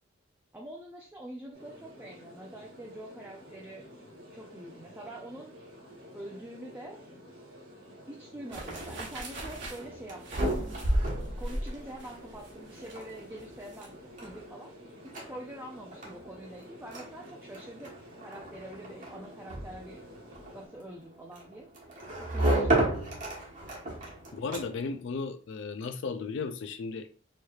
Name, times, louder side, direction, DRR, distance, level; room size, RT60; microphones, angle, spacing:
voice 1, 0.5-3.9 4.3-5.5 6.1-7.0 8.1-10.6 11.4-20.0 20.5-21.7 22.2-22.8, right 1 dB, 10° right, 0.5 m, -45 dB
sound 1, 1.5-20.7, equal, 85° right, 1.8 m, -51 dB
sound 2, 8.5-25.0, right 1 dB, 40° right, 1.1 m, -35 dB
sound 3, 8.5-13.9 14.2-14.3, right 1 dB, 65° right, 1.1 m, -35 dB
voice 2, 24.3-27.1, left 4 dB, 65° left, 0.4 m, -35 dB
4.5 x 3.1 x 2.3 m
head